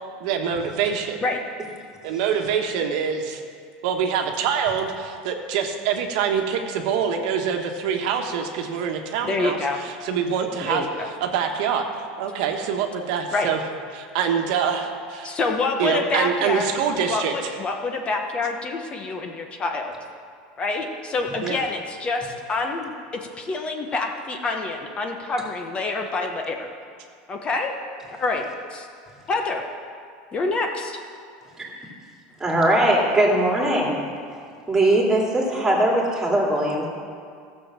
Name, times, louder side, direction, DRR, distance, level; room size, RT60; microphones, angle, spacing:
voice 1, 0.2-1.2 2.0-3.4 3.8-13.6 13.9-15.3 15.8-17.5 21.4-21.6, right 7 dB, 70° right, 4 dB, 1.3 m, -25 dB
voice 2, 9.2-9.8 10.6-10.9 13.3-13.5 15.2-16.7 17.1-19.9 20.6-22.9 23.4-26.7 27.3-27.7 28.2-28.4 28.7-28.9 29.3-29.6 30.3-31.0, left 3 dB, 25° left, 3 dB, 1.0 m, -26 dB
voice 3, 32.4-34.1 34.7-36.9, right 1 dB, 10° right, -2 dB, 2.6 m, -20 dB
14.0 x 6.7 x 7.4 m, 2.2 s
supercardioid pair, 135°, 4 cm